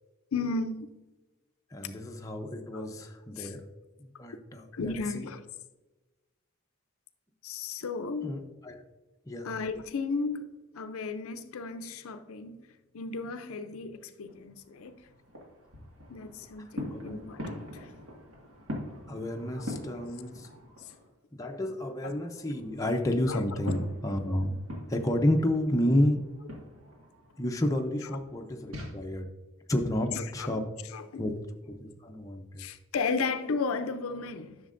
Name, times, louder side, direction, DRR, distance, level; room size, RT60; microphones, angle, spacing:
voice 1, 0.3-0.9 1.8-1.9 2.7-2.9 3.4-3.5 4.7-5.4 7.4-8.3 9.4-12.7 12.9-15.0 16.1-17.9 23.3-23.4 30.1-30.6 30.9-31.2 32.6-34.6, left 4 dB, 75° left, 10 dB, 0.5 m, -34 dB
voice 2, 1.7-3.6 4.0-5.2 8.2-8.8 9.3-9.5 16.9-17.3 19.1-20.5 21.3-24.6 24.9-26.2 27.4-29.3 29.7-30.6 31.2-31.3 31.7-32.7, left 1 dB, 15° left, 3 dB, 0.6 m, -30 dB
sound 1, 14.3-21.1 21.5-28.9, left 1 dB, 70° right, 1.7 m, -43 dB
11.0 x 6.4 x 2.5 m, 1.2 s
head